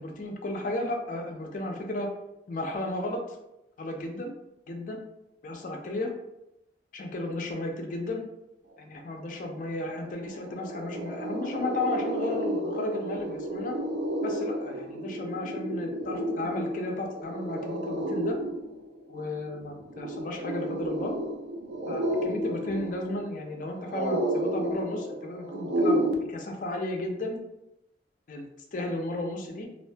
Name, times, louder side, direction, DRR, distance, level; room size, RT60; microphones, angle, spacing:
voice 1, 0.0-2.1 2.5-3.4 3.8-4.3 4.7-5.0 5.4-6.1 6.9-8.2 8.9-13.8 14.2-18.4 19.1-21.1 21.9-27.4 28.3-29.7, left 2 dB, 45° left, 2 dB, 0.4 m, -34 dB
sound 1, 9.6-9.7 10.0-26.1, right 1 dB, 60° right, 0.4 m, -32 dB
2.4 x 2.2 x 2.5 m, 0.88 s
head